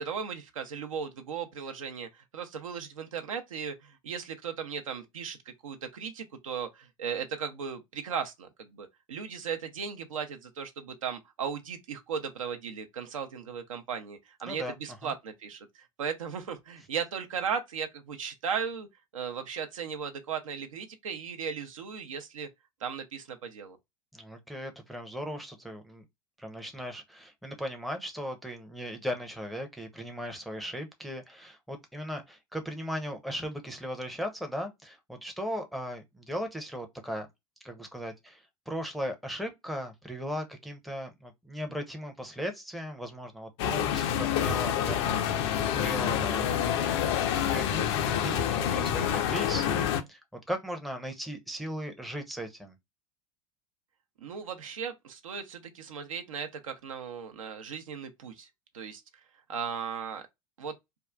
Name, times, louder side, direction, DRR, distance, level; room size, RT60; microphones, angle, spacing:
voice 1, 0.0-5.4 5.6-18.9 19.1-22.5 22.8-23.8 54.2-58.5 58.7-59.0 59.5-60.2 60.6-60.8, right 6 dB, 70° right, 0.6 m, -36 dB
voice 2, 24.1-26.0 26.4-37.3 37.6-46.8 47.4-52.8, equal, ahead, 0.6 m, -37 dB
sound 1, 43.6-50.0, left 9 dB, 50° left, 0.5 m, -27 dB
3.5 x 2.3 x 2.3 m
figure-of-eight pair, 80°, 18 cm